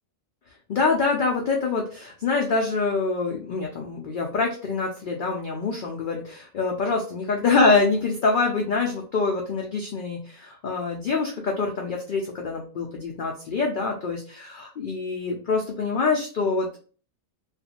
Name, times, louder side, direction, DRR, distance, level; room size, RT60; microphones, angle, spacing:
voice 1, 0.7-16.7, left 4 dB, 80° left, 1 dB, 0.4 m, -25 dB
2.5 x 2.4 x 2.7 m, 0.40 s
omnidirectional pair, 1.4 m